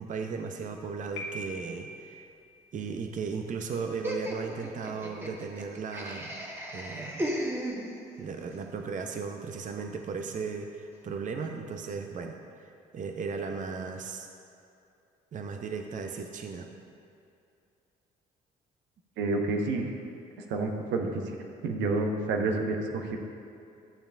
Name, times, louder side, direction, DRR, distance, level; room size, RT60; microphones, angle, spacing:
voice 1, 0.0-2.3 2.7-6.3 6.7-7.3 8.2-14.3 15.3-16.7, right 5 dB, 40° right, 4 dB, 0.6 m, -36 dB
Piano, 1.2-2.1, left 1 dB, 70° left, 1.3 m, -40 dB
Laughter, 4.0-8.3, equal, 10° right, 1.3 m, -36 dB
voice 2, 19.2-19.9 20.5-21.4 21.6-23.2, right 3 dB, 70° right, 3 dB, 0.8 m, -29 dB
11.5 x 6.8 x 2.6 m, 2.6 s
hypercardioid pair, 55°, 19 cm